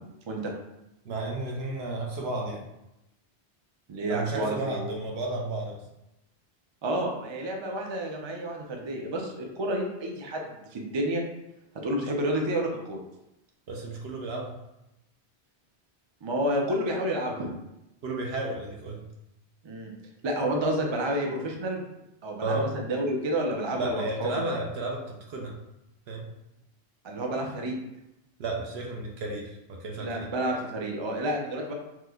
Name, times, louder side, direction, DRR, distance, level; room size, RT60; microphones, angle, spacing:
voice 1, 1.0-2.7 4.1-5.8 13.7-14.6 18.0-19.0 22.4-22.7 23.7-25.6 26.1-26.2 28.4-30.3, right 2 dB, 70° right, 0 dB, 0.9 m, -32 dB
voice 2, 3.9-4.8 6.8-11.2 11.8-13.0 16.2-17.5 19.6-19.9 20.2-21.8 22.2-24.3 27.0-27.7 30.0-31.7, right 1 dB, 45° right, 0 dB, 0.3 m, -30 dB
3.0 x 2.1 x 3.5 m, 0.90 s
omnidirectional pair, 1.1 m